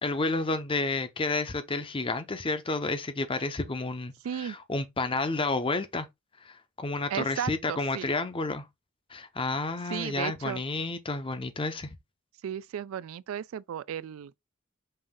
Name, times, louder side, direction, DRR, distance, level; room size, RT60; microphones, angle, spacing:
voice 1, 0.0-6.1 6.4-8.6 9.1-11.9, left 3 dB, 25° left, 0.6 m, -30 dB
voice 2, 4.2-4.6 7.1-8.1 9.8-10.6 12.4-14.4, right 9 dB, 80° right, 0.3 m, -35 dB
5.5 x 2.5 x 3.5 m
head